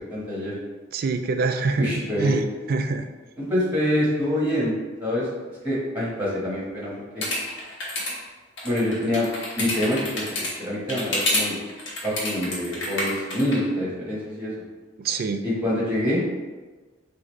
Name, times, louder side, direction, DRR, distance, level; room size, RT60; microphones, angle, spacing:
voice 1, 0.1-0.5 1.8-2.4 3.4-4.7 5.0-5.3 5.6-7.2 8.6-9.3 9.6-10.2 10.6-11.6 12.0-14.6 15.4-16.2, left 1 dB, 10° right, -7 dB, 1.2 m, -25 dB
voice 2, 0.9-3.0 15.0-15.4, right 3 dB, 50° right, 8 dB, 0.3 m, -25 dB
sound 1, 7.2-8.1 8.6-10.5 10.9-11.4 11.7-13.6, left 1 dB, 80° left, 1.2 m, -27 dB
4.9 x 2.6 x 3.1 m, 1.3 s
head